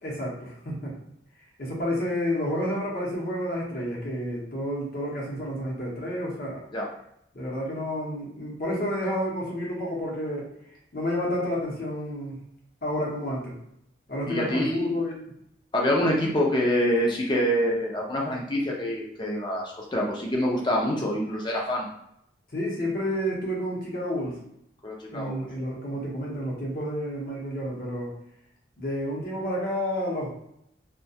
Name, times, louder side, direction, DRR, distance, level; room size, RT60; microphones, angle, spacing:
voice 1, 0.0-0.9 1.6-6.6 7.3-10.5 10.9-12.4 12.8-13.5 14.1-15.2 22.5-24.4 25.1-28.1 28.8-30.3, equal, 50° left, -3 dB, 0.8 m, -30 dB
voice 2, 14.3-14.9 15.7-21.9 24.8-25.5, equal, 25° left, -2 dB, 0.5 m, -26 dB
2.3 x 2.2 x 2.7 m, 0.76 s
head